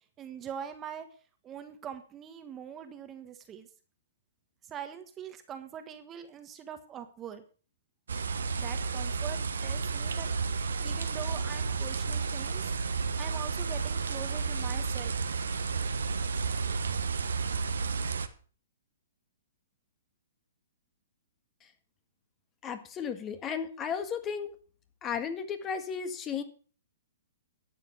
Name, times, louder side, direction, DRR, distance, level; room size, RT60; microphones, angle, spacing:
voice 1, 0.2-1.1 1.4-3.7 4.6-7.4 8.6-12.7 13.2-15.2, right 8 dB, 20° right, 8 dB, 1.4 m, -43 dB
sound 1, 8.1-18.3, right 4 dB, 80° right, 1.2 m, -32 dB
voice 2, 22.6-24.5 25.0-26.4, left 7 dB, 25° left, 9 dB, 1.7 m, -34 dB
12.0 x 7.6 x 6.6 m, 0.41 s
hypercardioid pair, 125°, 0 cm